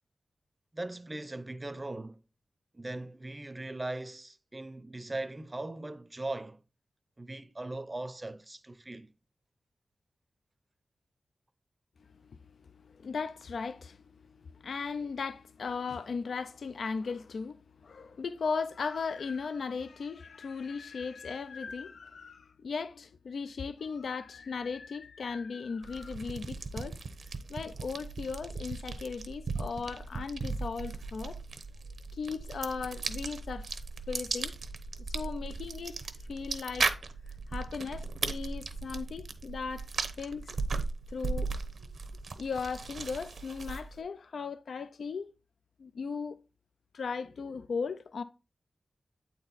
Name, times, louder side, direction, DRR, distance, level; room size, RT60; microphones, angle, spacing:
voice 1, 0.7-2.2 2.7-6.6 7.2-9.1, right 2 dB, 25° right, 0.6 m, -39 dB
voice 2, 12.3-27.0 27.2-31.4 32.1-33.7 34.1-34.5 35.0-36.9 37.5-39.9 40.2-40.6 41.1-41.5 42.4-45.3 45.8-46.4 46.9-48.2, left 5 dB, 80° left, 0.4 m, -37 dB
sound 1, 25.8-44.0, right 4 dB, 75° right, 0.8 m, -37 dB
8.5 x 4.3 x 4.0 m
wide cardioid pair, 80°, 0 cm